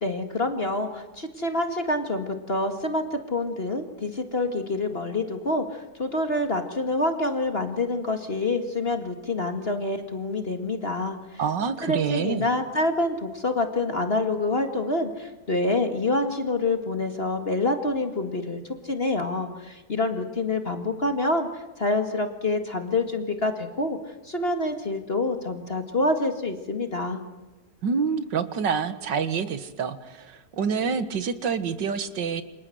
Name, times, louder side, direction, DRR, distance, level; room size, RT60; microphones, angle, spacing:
voice 1, 0.0-11.4 11.8-24.0 24.2-27.2, left 2 dB, 35° left, 6 dB, 2.2 m, -27 dB
voice 2, 11.4-12.5 27.8-32.4, right 6 dB, 90° right, 12 dB, 2.2 m, -27 dB
29.0 x 26.0 x 7.9 m, 1.1 s
omnidirectional pair, 1.9 m